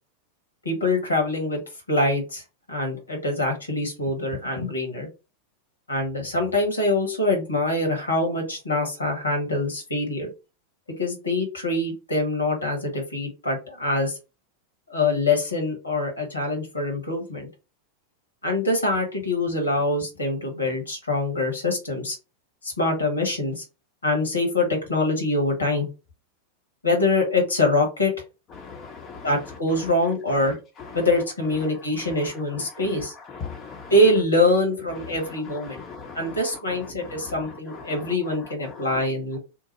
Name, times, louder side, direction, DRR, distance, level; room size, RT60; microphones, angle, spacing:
voice 1, 0.6-1.6 1.9-2.4 2.7-5.1 5.9-10.3 11.0-14.2 14.9-17.5 18.4-22.2 22.6-23.6 24.0-25.9 26.8-28.1 29.2-30.5 30.9-33.1 33.9-35.8 36.1-39.4, left 2 dB, 75° left, 1.4 m, -24 dB
voice 2, 28.6-29.3 32.0-32.1 32.7-32.8 33.3-33.9 35.7-36.4 36.7-36.8 37.1-38.1 38.6-38.8, left 5 dB, 30° left, 0.8 m, -39 dB
3.0 x 2.1 x 4.1 m
figure-of-eight pair, 90°, 0 cm